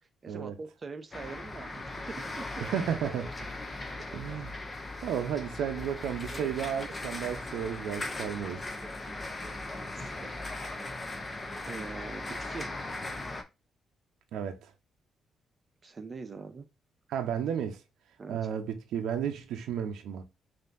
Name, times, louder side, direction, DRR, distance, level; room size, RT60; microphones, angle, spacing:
voice 1, 0.2-2.6 6.3-6.4 8.8-9.1 9.4-10.9 11.6-12.8 15.8-16.7 18.2-18.4, right 4 dB, 25° right, 0.7 m, -44 dB
sound 1, 1.1-13.4, left 2 dB, 15° left, 0.7 m, -39 dB
voice 2, 2.6-3.3 4.1-4.6 5.0-8.7 14.3-14.7 17.1-17.8 18.3-20.2, right 8 dB, 90° right, 0.7 m, -33 dB
5.6 x 2.8 x 2.6 m
cardioid pair, 175°, 0 cm